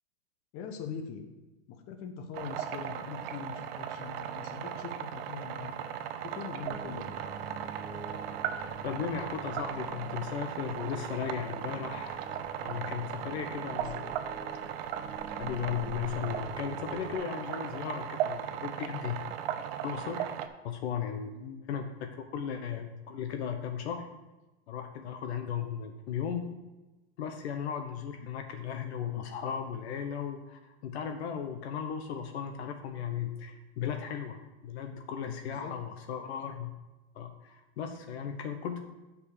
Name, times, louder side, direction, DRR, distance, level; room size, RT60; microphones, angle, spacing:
voice 1, 0.5-1.3 1.7-5.8 6.2-7.1 13.2-14.2 21.3-21.6 35.4-35.8, left 7 dB, 40° left, 6 dB, 1.2 m, -43 dB
sound 1, 2.3-20.5, right 10 dB, 60° right, 0.8 m, -37 dB
sound 2, 6.6-17.2, right 1 dB, 5° left, 1.5 m, -47 dB
voice 2, 8.8-12.2 12.6-14.0 15.3-19.2 19.8-20.3 20.6-21.3 21.7-24.1 24.7-26.5 27.2-36.7 37.1-38.8, left 8 dB, 70° left, 6 dB, 1.0 m, -36 dB
7.0 x 5.4 x 6.6 m, 1.1 s
supercardioid pair, 130°, 34 cm